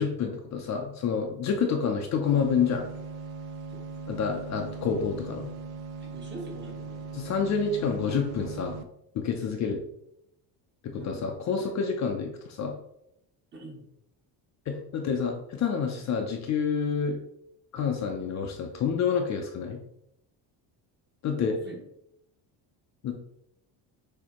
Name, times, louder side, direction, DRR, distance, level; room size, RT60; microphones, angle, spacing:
voice 1, 0.0-2.9 4.1-5.5 7.1-8.8 9.1-9.8 10.8-12.8 14.7-17.2 17.7-19.8 21.2-21.6 23.0-23.1, left 6 dB, 40° left, 3 dB, 0.5 m, -28 dB
sound 1, 2.2-8.8, right 5 dB, 65° right, 0.6 m, -39 dB
voice 2, 3.7-4.1 6.0-7.3 11.0-11.3 13.5-13.9 21.3-21.8, right 2 dB, 25° right, 0 dB, 0.9 m, -44 dB
6.3 x 2.7 x 2.9 m, 0.79 s
cardioid pair, 165°, 43 cm